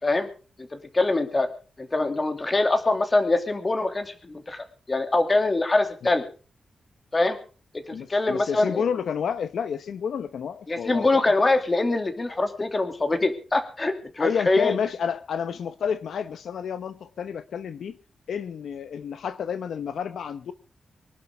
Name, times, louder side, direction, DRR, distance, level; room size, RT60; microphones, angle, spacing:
voice 1, 0.7-1.5 1.8-6.3 7.1-7.4 7.7-8.8 10.7-14.8, left 2 dB, 25° left, 7 dB, 2.6 m, -24 dB
voice 2, 7.9-11.2 14.2-18.0 18.3-20.5, left 7 dB, 80° left, 11 dB, 0.9 m, -30 dB
24.5 x 12.0 x 3.6 m, 0.36 s
wide cardioid pair, 145°, 0 cm